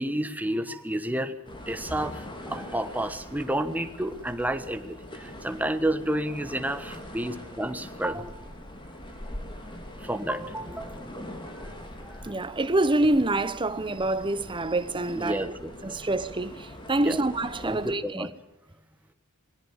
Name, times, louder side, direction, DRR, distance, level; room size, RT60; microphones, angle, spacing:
voice 1, 0.0-1.3 1.7-8.4 10.0-11.0 11.5-11.7 12.0-12.2 15.1-16.0 17.0-17.2 17.6-18.3, right 1 dB, 10° right, 1.2 m, -31 dB
sound 1, 1.4-18.0, left 1 dB, 25° left, 3.4 m, -42 dB
voice 2, 12.2-15.5 15.8-18.3, right 2 dB, 25° right, 0.9 m, -26 dB
21.0 x 18.0 x 7.2 m
head